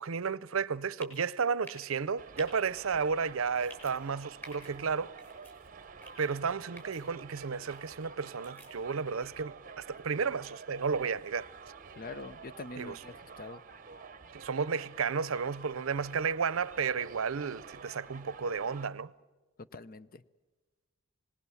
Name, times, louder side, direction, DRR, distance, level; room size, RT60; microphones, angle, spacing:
voice 1, 0.0-5.1 6.2-11.5 12.8-13.0 14.3-19.1, right 5 dB, 75° right, 0.6 m, -32 dB
sound 1, 1.0-1.2 1.6-1.9 2.4-2.5 3.5-3.9 4.4-4.7 5.2-5.5 6.0-6.3 6.8-7.0 7.7-8.0 8.4-8.7, right 1 dB, 10° left, 6.0 m, -50 dB
Subway metro underground, 2.2-18.9, right 5 dB, 40° right, 0.8 m, -50 dB
voice 2, 12.0-13.6 19.6-20.2, left 2 dB, 45° left, 0.6 m, -44 dB
26.5 x 19.5 x 7.1 m
head